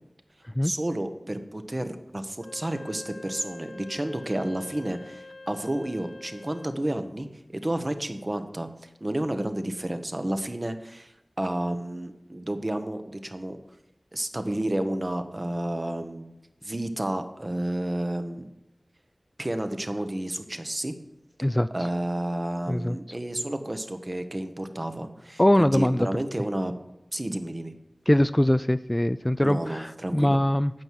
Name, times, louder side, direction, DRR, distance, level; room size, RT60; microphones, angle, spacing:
voice 1, 0.6-13.6 14.1-16.2 16.6-18.5 19.4-20.9 21.7-26.7 27.1-27.7 29.4-30.4, right 1 dB, 35° right, 8 dB, 1.1 m, -31 dB
Wind instrument woodwind instrument, 2.3-6.8, left 2 dB, 80° left, 0.6 m, -45 dB
voice 2, 25.4-26.1 28.1-30.7, left 1 dB, 15° left, 13 dB, 0.3 m, -22 dB
8.9 x 6.2 x 7.5 m, 0.95 s
wide cardioid pair, 40°, 0 cm